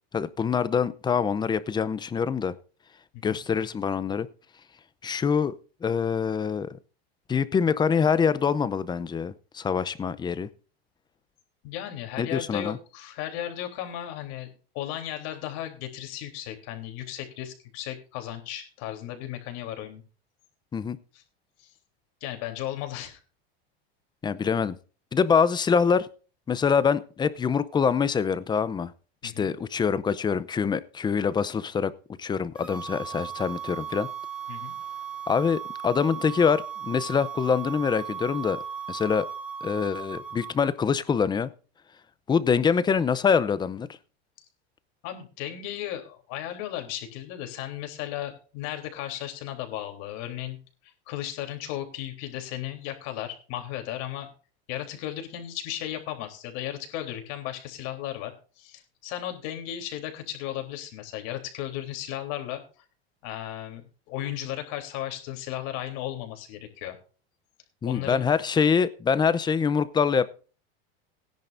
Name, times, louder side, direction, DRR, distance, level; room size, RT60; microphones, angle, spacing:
voice 1, 0.1-2.5 3.2-4.3 5.0-5.5 5.8-6.8 7.3-10.5 12.2-12.8 20.7-21.0 24.2-24.8 25.1-26.1 26.5-28.9 29.2-31.9 32.2-34.1 35.3-38.6 38.9-39.3 39.6-41.5 42.3-43.9 67.8-70.3, left 6 dB, 15° left, 0.6 m, -25 dB
voice 2, 11.6-20.0 21.1-21.2 21.6-21.7 22.2-23.2 29.2-29.5 34.5-34.8 44.4-44.5 45.0-50.6 50.8-54.3 54.7-62.6 63.2-67.0 67.9-68.3, left 12 dB, 55° left, 3.5 m, -35 dB
sound 1, 32.6-40.7, right 8 dB, 5° right, 2.0 m, -37 dB
18.0 x 10.5 x 2.6 m
supercardioid pair, 135°, 32 cm